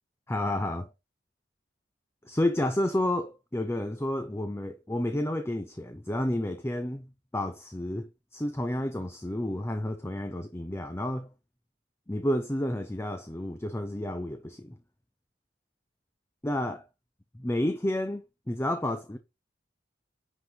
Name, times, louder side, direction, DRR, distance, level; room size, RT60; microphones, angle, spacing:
voice 1, 0.3-0.9 2.3-7.1 7.3-11.3 12.1-14.8 16.4-16.8 17.3-19.2, left 1 dB, 15° left, 0.7 m, -30 dB
10.0 x 4.0 x 4.9 m
head